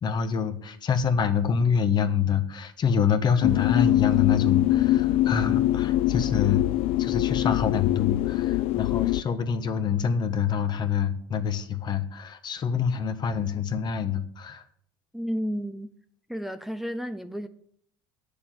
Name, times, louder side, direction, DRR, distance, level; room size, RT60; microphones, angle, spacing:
voice 1, 0.0-6.7 7.0-14.6, left 7 dB, 40° left, 1.3 m, -26 dB
sound 1, 3.4-9.2, left 15 dB, 65° left, 0.4 m, -23 dB
voice 2, 15.1-15.9 16.3-17.5, equal, ahead, 0.7 m, -32 dB
8.9 x 7.0 x 8.8 m
supercardioid pair, 80°, 11 cm